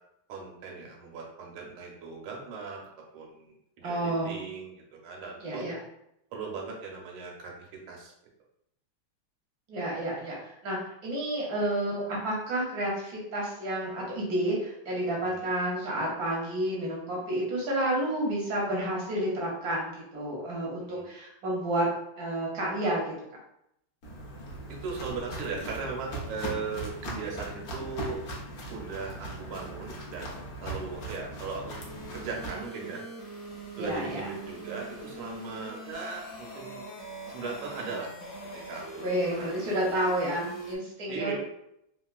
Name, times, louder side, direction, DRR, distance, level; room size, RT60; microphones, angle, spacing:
voice 1, 0.3-5.7 6.3-8.1 15.2-15.5 20.9-21.0 24.7-28.2 28.7-30.4 30.6-31.7 32.1-33.0 33.8-36.9 37.3-38.1 38.5-39.9 41.1-41.4, right 4 dB, 85° right, -1 dB, 1.6 m, -38 dB
voice 2, 3.8-4.4 5.4-5.8 9.7-21.9 22.2-23.1 33.8-34.3 39.0-41.4, right 1 dB, 65° right, -3 dB, 0.9 m, -30 dB
Walk footsteps, 24.0-32.5, right 1 dB, 65° left, 0.9 m, -39 dB
sound 1, 31.9-40.8, right 2 dB, 40° left, 0.8 m, -42 dB
3.5 x 2.4 x 2.3 m, 0.79 s
omnidirectional pair, 2.3 m